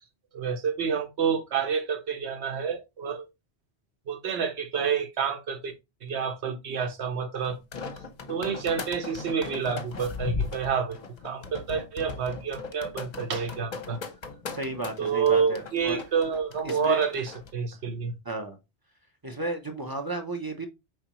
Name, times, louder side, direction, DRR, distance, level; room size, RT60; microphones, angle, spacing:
voice 1, 0.3-3.3 4.1-5.7 6.0-7.6 8.3-11.0 11.2-14.0 15.0-18.1, right 6 dB, 80° right, 1.1 m, -28 dB
sound 1, 7.4-17.5, left 4 dB, 45° left, 0.7 m, -37 dB
voice 2, 14.5-16.0 16.6-17.0 18.2-18.6 19.2-20.7, right 2 dB, 30° right, 0.5 m, -33 dB
4.9 x 3.4 x 2.9 m
omnidirectional pair, 1.1 m